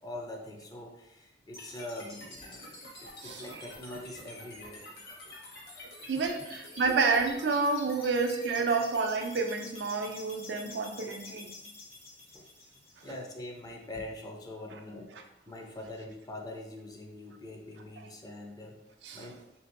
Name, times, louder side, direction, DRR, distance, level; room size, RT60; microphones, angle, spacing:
voice 1, 0.0-4.9 6.2-6.5 7.0-7.1 8.3-8.9 12.3-12.5 13.0-18.8 19.1-19.4, left 1 dB, 20° left, 1 dB, 0.4 m, -43 dB
sound 1, 1.5-13.6, left 2 dB, 60° left, 1.0 m, -48 dB
voice 2, 6.1-11.5 13.0-13.1 19.0-19.2, right 4 dB, 80° right, 5 dB, 0.4 m, -29 dB
3.3 x 2.6 x 2.5 m, 0.89 s
head